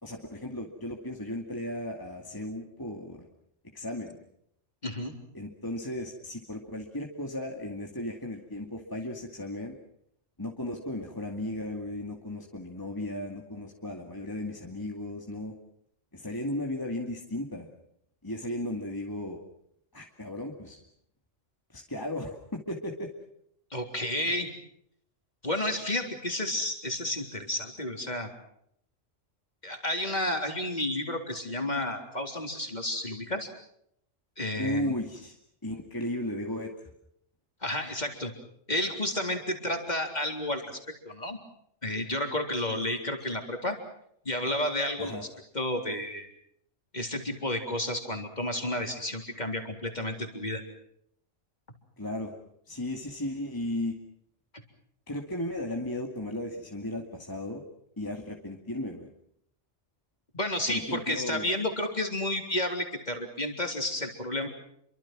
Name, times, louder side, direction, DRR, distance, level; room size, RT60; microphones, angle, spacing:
voice 1, 0.0-3.3 3.7-4.2 5.3-9.8 10.4-15.5 16.1-17.7 18.2-19.4 19.9-20.8 21.7-23.1 34.6-35.4 35.6-36.7 45.0-45.2 52.0-52.4 52.7-54.0 55.1-57.6 58.0-59.1 60.7-61.5, left 1 dB, 15° left, 1 dB, 2.4 m, -35 dB
voice 2, 4.8-5.1 23.7-24.5 25.4-28.3 29.6-33.5 34.4-34.9 37.6-38.3 38.7-41.4 41.8-43.8 44.2-45.2 45.5-46.3 46.9-50.6 60.3-64.5, left 1 dB, 35° left, 4 dB, 3.9 m, -31 dB
29.0 x 24.0 x 6.1 m, 0.72 s
omnidirectional pair, 1.3 m